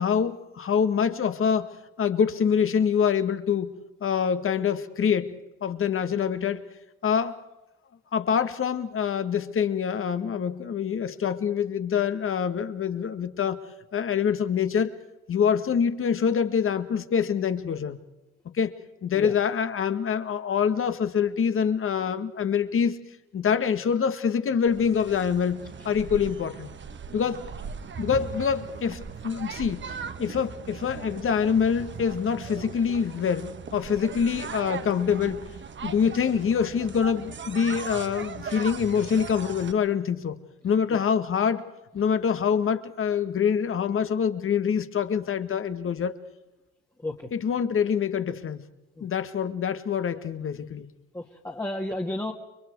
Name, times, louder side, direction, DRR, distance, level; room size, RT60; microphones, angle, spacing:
voice 1, 0.0-6.7 7.0-7.4 8.1-13.6 13.9-15.0 15.3-18.0 18.5-23.0 23.3-26.7 27.1-27.5 28.0-29.9 30.2-35.5 35.8-40.4 40.6-41.7 41.9-46.2 47.3-48.6 49.0-50.9, left 7 dB, 40° left, 10 dB, 1.8 m, -25 dB
sound 1, 24.7-39.7, right 6 dB, 35° right, 1.5 m, -39 dB
voice 2, 51.1-52.3, left 1 dB, 10° left, -1 dB, 2.1 m, -32 dB
30.0 x 23.5 x 4.8 m, 1.0 s
supercardioid pair, 85°, 31 cm